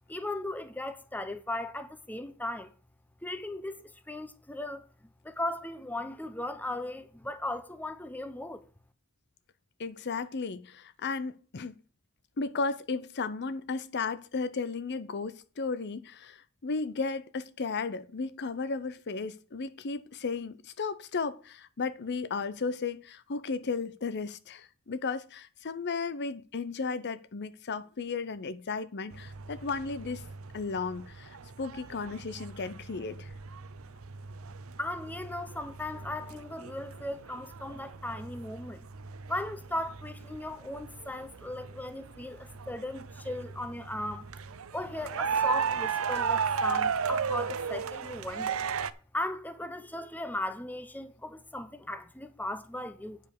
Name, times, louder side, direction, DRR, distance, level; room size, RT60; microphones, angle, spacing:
voice 1, 0.1-2.7 3.2-4.9 5.2-8.6 34.8-38.8 39.3-44.3 44.7-48.6 49.1-53.2, left 1 dB, 10° left, 0.8 m, -37 dB
voice 2, 9.8-11.8 12.4-30.2 30.5-33.3, left 4 dB, 55° left, 0.6 m, -34 dB
sound 1, 29.1-48.9, right 6 dB, 70° right, 0.6 m, -36 dB
9.3 x 5.3 x 6.6 m
head